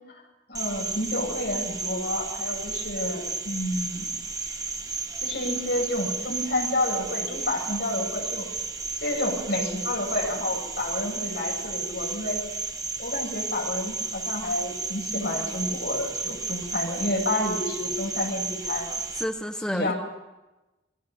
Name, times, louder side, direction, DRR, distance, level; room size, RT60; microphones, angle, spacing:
voice 1, 0.5-4.1 5.2-8.5 9.0-12.4 13.0-19.0 19.7-19.9, left 1 dB, 65° left, 0 dB, 7.5 m, -29 dB
Cricket, 0.5-19.2, right 3 dB, 20° right, 1.8 m, -33 dB
voice 2, 19.1-19.9, equal, 5° left, 4 dB, 1.0 m, -30 dB
29.0 x 23.0 x 5.5 m, 1.1 s
head